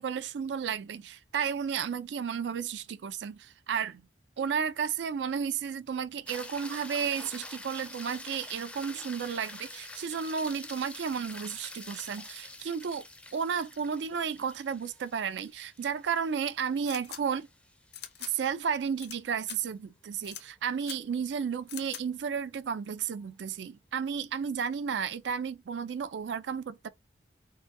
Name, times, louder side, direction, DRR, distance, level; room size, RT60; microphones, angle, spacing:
voice 1, 0.0-4.0 4.4-13.1 13.3-17.5 18.2-26.9, right 7 dB, 75° right, 0.4 m, -33 dB
sound 1, 6.3-18.7 23.1-23.2, left 2 dB, 5° left, 0.4 m, -46 dB
sound 2, 16.8-17.2 17.9-18.3 19.0-19.1 19.4-19.6 20.2-20.4 20.8-21.0 21.7-22.0, left 10 dB, 60° left, 0.6 m, -42 dB
3.7 x 2.2 x 2.6 m
head